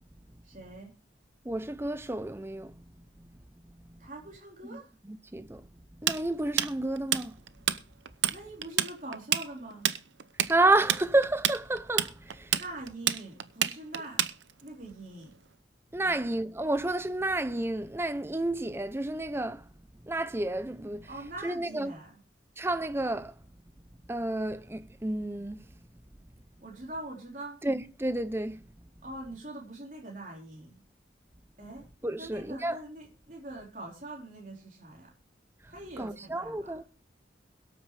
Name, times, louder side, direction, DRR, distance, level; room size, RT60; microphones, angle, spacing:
voice 1, 0.4-0.9 4.0-4.9 8.3-9.9 12.5-14.3 14.6-15.4 16.0-16.2 21.1-22.2 26.6-27.6 29.0-30.8 31.6-31.9 32.2-35.1 35.7-36.8, right 2 dB, 45° right, 4.0 m, -43 dB
voice 2, 1.4-2.8 3.2-3.3 3.6-4.1 4.7-4.8 5.1-5.7 6.0-7.4 10.5-12.6 15.9-19.7 20.0-21.1 21.4-21.9 22.6-23.4 24.1-25.7 27.6-28.6 32.0-32.8 35.6-36.8, right 2 dB, 15° right, 0.6 m, -30 dB
Tools, 6.1-7.8 8.1-8.4 8.6-14.7, right 11 dB, 80° right, 0.7 m, -28 dB
22.5 x 8.7 x 3.3 m
head